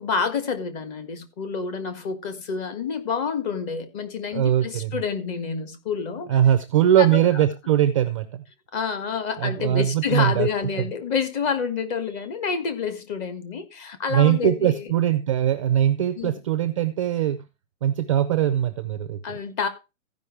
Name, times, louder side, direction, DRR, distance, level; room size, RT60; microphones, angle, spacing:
voice 1, 0.0-6.3 7.0-7.4 8.7-14.9 16.2-16.4 19.2-19.7, left 6 dB, 25° left, 1.6 m, -28 dB
voice 2, 4.3-4.9 6.3-8.4 9.4-10.5 14.1-17.4 17.8-19.2, right 11 dB, 25° right, 0.4 m, -21 dB
14.5 x 5.3 x 4.7 m
hypercardioid pair, 155°, 42 cm